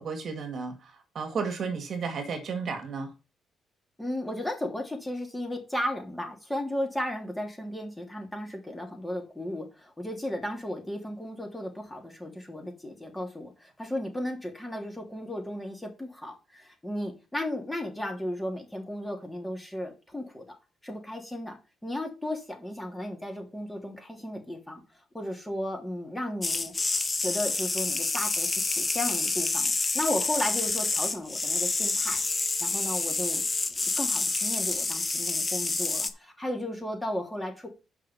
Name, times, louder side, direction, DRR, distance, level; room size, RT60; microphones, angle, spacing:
voice 1, 0.0-3.1, right 5 dB, 55° right, 2.1 m, -33 dB
voice 2, 4.0-20.4 20.8-21.6 21.8-26.7 27.2-32.2 32.6-33.4 33.8-37.7, left 1 dB, 10° left, 3.1 m, -35 dB
sound 1, 26.4-36.1, left 3 dB, 25° left, 1.1 m, -28 dB
6.0 x 5.6 x 6.8 m
cardioid pair, 75°, 0 cm